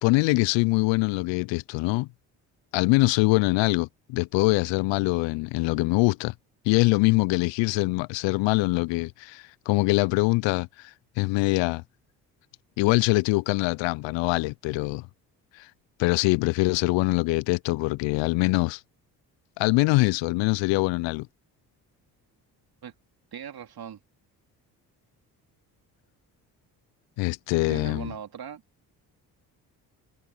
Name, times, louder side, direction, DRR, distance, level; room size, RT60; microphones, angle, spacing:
voice 1, 0.0-2.1 2.7-6.3 6.7-11.8 12.8-15.1 15.5-15.7 16.0-18.8 19.6-21.3 27.2-28.1, left 24 dB, 70° left, 0.7 m, -23 dB
voice 2, 23.3-24.0 27.7-28.6, right 8 dB, 50° right, 3.4 m, -39 dB
hypercardioid pair, 50°, 47 cm